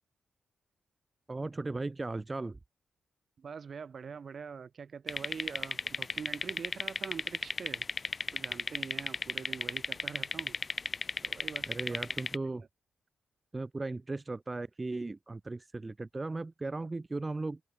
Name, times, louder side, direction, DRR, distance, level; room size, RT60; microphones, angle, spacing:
voice 1, 1.3-2.6 11.7-12.7 13.5-17.6, right 3 dB, 30° right, 0.9 m, -37 dB
voice 2, 3.4-7.9 8.3-10.6 11.2-12.2, right 6 dB, 55° right, 5.4 m, -44 dB
sound 1, 5.1-12.4, left 4 dB, 40° left, 0.6 m, -35 dB
supercardioid pair, 45°, 0 cm